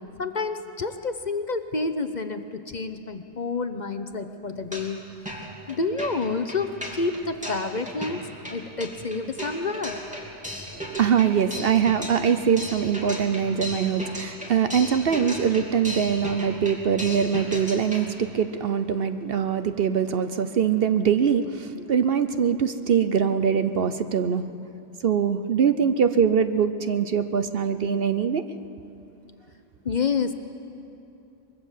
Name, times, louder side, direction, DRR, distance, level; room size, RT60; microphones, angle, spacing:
voice 1, 0.0-5.0 5.7-8.2 8.5-10.0 21.8-21.9 29.8-30.3, left 4 dB, 40° left, 9 dB, 0.9 m, -29 dB
sound 1, 4.5-5.0 5.3-18.1, equal, 5° right, 3.0 m, -36 dB
voice 2, 10.7-24.4 25.0-28.4, right 7 dB, 55° right, 10 dB, 0.9 m, -23 dB
24.0 x 22.0 x 7.3 m, 2.8 s
omnidirectional pair, 1.3 m